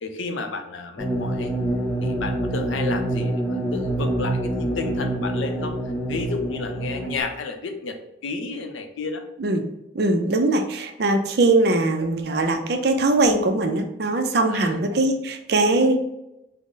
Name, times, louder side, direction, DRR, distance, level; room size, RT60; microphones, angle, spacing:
voice 1, 0.0-1.5 2.0-5.8 6.1-9.2 14.5-14.8, left 4 dB, 85° left, 5 dB, 0.5 m, -31 dB
sound 1, 1.0-7.2, right 1 dB, 15° left, 0.5 m, -26 dB
voice 2, 9.9-16.0, right 2 dB, 55° right, 5 dB, 0.4 m, -21 dB
3.7 x 2.0 x 3.8 m, 0.90 s
head